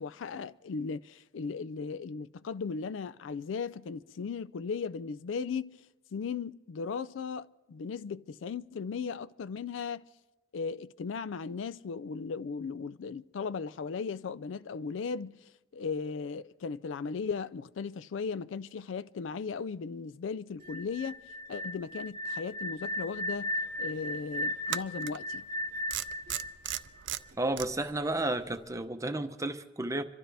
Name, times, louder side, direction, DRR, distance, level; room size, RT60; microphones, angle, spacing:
voice 1, 0.0-5.8 6.1-10.1 10.5-15.4 15.7-23.5 23.8-25.4, left 5 dB, 80° left, 0.4 m, -37 dB
sound 1, 20.6-27.5, left 1 dB, 50° right, 0.9 m, -36 dB
sound 2, 23.3-23.4 24.7-25.2 25.9-27.7, right 12 dB, 70° right, 0.5 m, -35 dB
voice 2, 27.4-30.0, right 2 dB, 15° right, 0.7 m, -32 dB
27.0 x 12.5 x 3.4 m
head